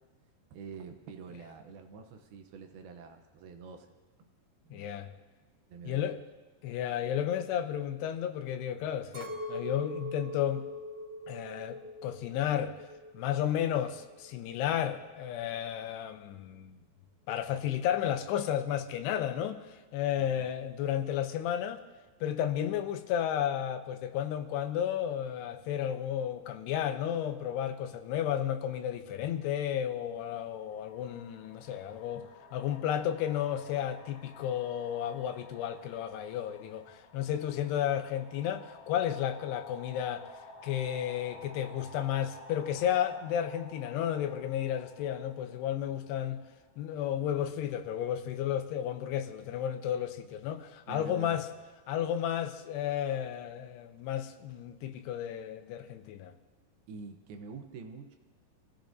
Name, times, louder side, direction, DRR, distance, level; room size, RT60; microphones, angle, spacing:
voice 1, 0.5-4.3 4.7-4.9 5.7-6.1 20.2-20.5 50.9-51.4 56.9-58.2, right 5 dB, 75° right, 2.5 m, -46 dB
voice 2, 4.7-5.1 5.9-6.2 6.6-10.6 11.3-12.8 13.1-16.8 17.3-21.8 22.2-40.3 40.6-46.4 46.8-51.5 51.9-56.3, left 10 dB, 90° left, 2.8 m, -33 dB
Chink clink, 9.1-13.5 13.8-14.6, left 1 dB, 25° right, 1.8 m, -42 dB
sound 1, 29.4-29.5 30.3-47.0, left 2 dB, 55° left, 2.8 m, -53 dB
26.0 x 15.5 x 2.6 m
omnidirectional pair, 4.8 m